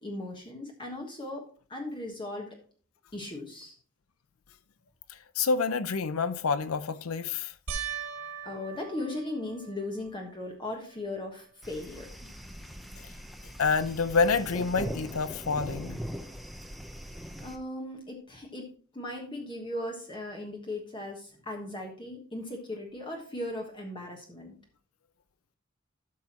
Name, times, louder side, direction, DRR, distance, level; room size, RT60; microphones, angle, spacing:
voice 1, 0.0-2.6 3.1-3.7 8.4-12.1 17.4-18.7 18.9-24.6, left 1 dB, 20° left, 1.3 m, -38 dB
voice 2, 5.4-7.5 13.6-16.0, left 4 dB, 80° left, 0.6 m, -27 dB
sound 1, 7.7-10.3 10.9-11.5 11.8-11.9 15.1-15.2, right 6 dB, 80° right, 1.7 m, -40 dB
sound 2, 11.6-17.6, equal, ahead, 0.7 m, -41 dB
12.5 x 6.3 x 3.0 m
head